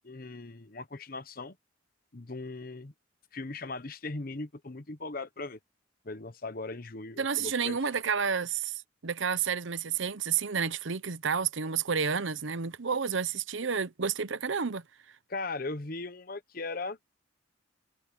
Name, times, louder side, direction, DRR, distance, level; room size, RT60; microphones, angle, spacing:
voice 1, 0.0-1.5 2.1-2.9 3.3-5.6 6.0-7.8 15.3-17.0, left 3 dB, 45° left, 1.0 m, -38 dB
voice 2, 7.2-14.8, right 6 dB, 75° right, 0.8 m, -30 dB
head